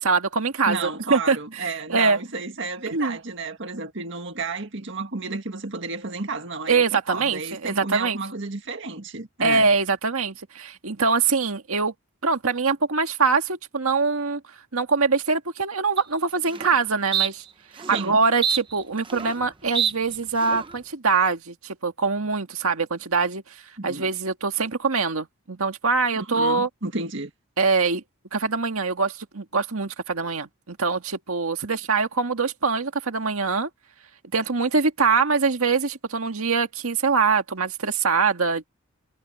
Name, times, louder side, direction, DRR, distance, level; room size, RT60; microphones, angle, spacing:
voice 1, 0.0-2.2 2.9-3.2 6.7-8.2 9.4-11.9 12.2-17.4 17.7-26.7 27.6-28.0 28.3-33.7 34.3-38.7, right 4 dB, 80° right, 1.7 m, -23 dB
voice 2, 0.7-9.7 17.9-18.2 23.8-24.1 26.2-27.3, right 3 dB, 55° right, 1.8 m, -32 dB
sound 1, 16.0-16.1 16.5-16.7 17.1-17.3 17.8-18.1 18.4-19.4 19.7-19.9 20.4-20.7, right 7 dB, 25° right, 0.9 m, -26 dB
head